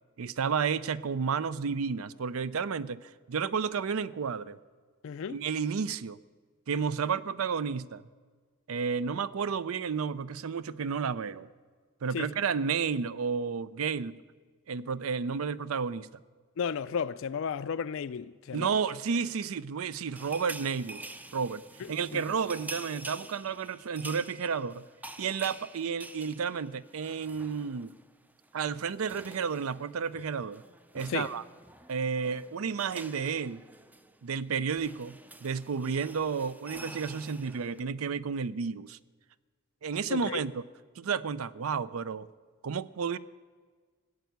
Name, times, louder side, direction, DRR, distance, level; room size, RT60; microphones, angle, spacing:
voice 1, 0.2-4.6 5.3-6.2 6.7-8.0 8.7-11.5 12.0-14.2 14.7-16.1 18.5-21.1 21.3-21.6 21.9-24.8 25.2-28.0 28.5-30.6 30.9-31.4 31.9-33.6 34.2-39.0 39.8-40.6 41.0-42.3 42.6-43.2, right 6 dB, 75° right, 0.5 m, -31 dB
voice 2, 5.0-5.4 12.1-12.3 16.6-18.7 21.8-22.2 31.1-31.3 40.1-40.4, left 6 dB, 65° left, 0.4 m, -34 dB
sound 1, 20.2-28.0 28.3-28.5 28.7-37.8, right 2 dB, 10° right, 0.4 m, -47 dB
15.5 x 8.2 x 9.3 m
head